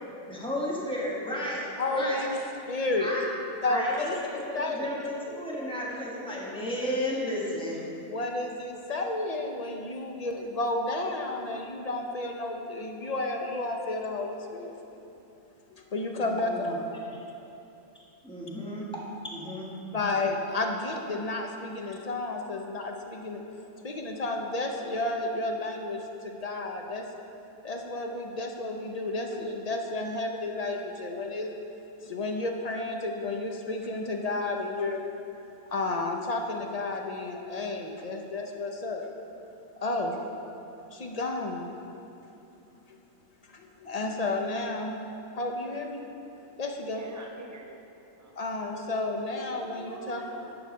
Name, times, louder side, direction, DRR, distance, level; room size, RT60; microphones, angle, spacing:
voice 1, 0.3-2.3 3.0-3.2 3.6-7.9 16.3-16.8 17.2-17.3 18.2-18.9 19.2-19.7, left 1 dB, 5° left, -5 dB, 1.5 m, -33 dB
voice 2, 1.8-2.4 2.7-3.1 3.6-4.9 5.5-5.6 8.1-14.8 15.7-16.8 19.9-23.4 23.8-27.1 27.6-31.5 32.0-35.0 35.7-39.1 39.8-40.2 40.9-42.0 42.9-43.0 43.5-45.0 45.3-46.0 46.6-47.0 48.4-50.2, left 2 dB, 50° left, 2 dB, 0.5 m, -32 dB
voice 3, 46.9-47.8 48.2-48.3 49.5-50.5, right 2 dB, 20° right, 0 dB, 0.5 m, -45 dB
10.5 x 4.8 x 6.5 m, 2.8 s
omnidirectional pair, 1.5 m